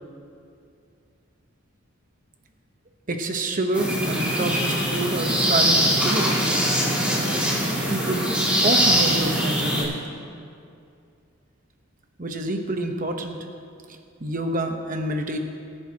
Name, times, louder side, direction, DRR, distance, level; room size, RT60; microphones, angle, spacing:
voice 1, 3.1-6.5 7.9-8.2 8.6-9.9 12.2-13.4 14.2-15.4, right 2 dB, 35° right, 4 dB, 1.0 m, -27 dB
sound 1, 3.7-9.8, equal, 5° right, 2.3 m, -22 dB
24.0 x 10.5 x 2.9 m, 2.4 s
head